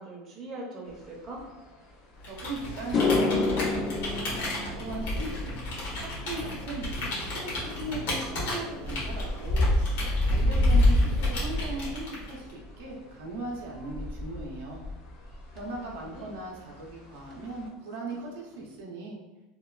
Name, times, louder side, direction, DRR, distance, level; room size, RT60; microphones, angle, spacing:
voice 1, 0.0-1.4 15.6-16.3, right 2 dB, 25° right, -3 dB, 0.5 m, -42 dB
sound 1, 0.9-1.0 1.4-1.7 2.7-3.2 3.7-12.9 13.2-17.6, left 1 dB, 60° left, 0.7 m, -29 dB
Computer keyboard, 2.2-12.5, left 1 dB, 85° left, 1.0 m, -35 dB
sound 2, 2.2-2.3 2.7-11.2 11.5-12.0 15.6-15.7 17.3-17.4 17.7-17.8 18.1-18.6, left 3 dB, 25° left, 0.3 m, -33 dB
voice 2, 2.3-5.6 6.0-6.9 7.3-14.8 15.5-19.2, right 2 dB, 90° right, -2 dB, 0.6 m, -39 dB
2.9 x 2.2 x 2.3 m, 1.0 s
supercardioid pair, 160°, 0 cm